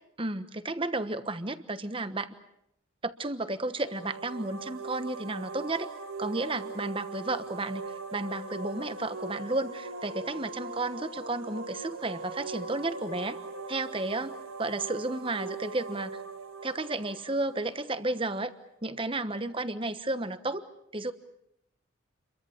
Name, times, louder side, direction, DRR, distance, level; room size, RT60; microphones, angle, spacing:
voice 1, 0.2-2.3 3.0-5.9 6.2-13.4 13.7-16.2 16.6-18.5 18.8-20.6 20.9-21.1, right 2 dB, 25° right, 11 dB, 1.2 m, -32 dB
sound 1, 3.6-18.3, right 3 dB, 70° right, 1.8 m, -40 dB
29.5 x 23.0 x 7.2 m, 0.82 s
head